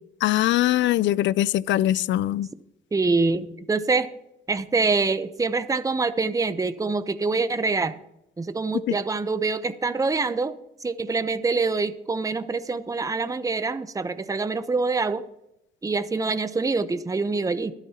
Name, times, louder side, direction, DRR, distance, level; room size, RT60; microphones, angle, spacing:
voice 1, 0.2-2.5, left 14 dB, 70° left, 0.4 m, -22 dB
voice 2, 2.9-4.1 4.5-8.0 8.4-10.5 10.8-15.2 15.8-17.7, right 3 dB, 15° right, 0.7 m, -25 dB
24.0 x 9.0 x 2.9 m
cardioid pair, 90°, 20 cm